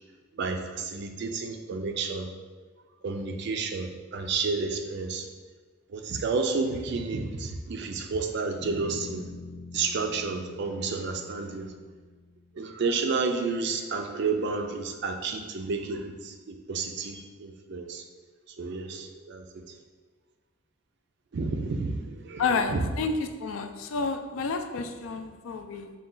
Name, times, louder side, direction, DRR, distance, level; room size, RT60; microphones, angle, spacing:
voice 1, 0.4-2.3 3.0-5.3 5.9-9.2 9.7-11.7 12.6-18.0 18.6-19.8 21.3-22.8, right 4 dB, 60° right, 5 dB, 0.4 m, -31 dB
sound 1, 8.6-12.6, left 3 dB, 35° left, 0.5 m, -44 dB
voice 2, 22.4-25.9, left 4 dB, 85° left, 7 dB, 0.4 m, -30 dB
5.1 x 2.3 x 3.7 m, 1.4 s
head